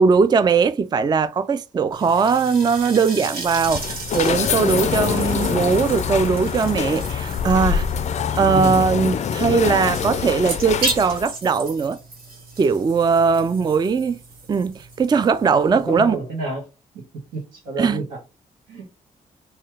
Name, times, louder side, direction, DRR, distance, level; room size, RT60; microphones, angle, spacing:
voice 1, 0.0-7.9 8.3-12.0 12.6-14.2 14.5-16.2 17.8-18.0, right 5 dB, 25° right, 0.3 m, -19 dB
sound 1, 1.9-16.2, right 2 dB, 65° right, 1.5 m, -35 dB
sound 2, 3.5-11.3, left 7 dB, 45° left, 0.4 m, -24 dB
voice 2, 8.4-8.8 13.6-13.8 15.7-16.7 16.9-17.1 17.3-18.2 18.7-18.9, right 2 dB, 85° right, 1.3 m, -30 dB
3.1 x 2.8 x 3.4 m
hypercardioid pair, 45°, 16 cm